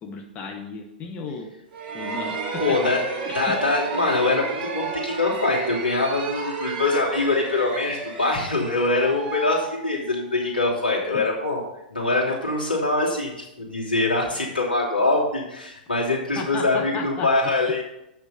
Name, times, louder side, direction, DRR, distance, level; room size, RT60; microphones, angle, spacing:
voice 1, 0.0-1.5 1.9-2.4 2.7-2.8 3.2-3.6 11.1-11.2 16.4-17.3, left 4 dB, 30° left, 2 dB, 1.1 m, -34 dB
sound 1, 1.7-10.4, right 4 dB, 35° right, 1.9 m, -32 dB
voice 2, 2.6-3.0 3.3-11.6 11.9-17.8, left 2 dB, 85° left, -4 dB, 2.9 m, -23 dB
8.2 x 6.2 x 5.6 m, 0.85 s
figure-of-eight pair, 105°, 5 cm